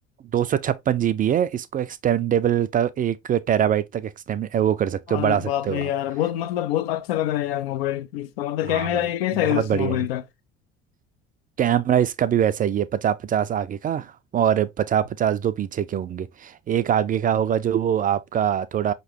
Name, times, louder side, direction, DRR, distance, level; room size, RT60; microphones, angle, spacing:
voice 1, 0.3-5.9 8.7-9.0 9.4-10.0 11.6-18.9, right 9 dB, 25° right, 0.4 m, -23 dB
voice 2, 5.1-10.2, left 13 dB, 70° left, 0.5 m, -25 dB
5.2 x 3.0 x 2.7 m
figure-of-eight pair, 60°, 31 cm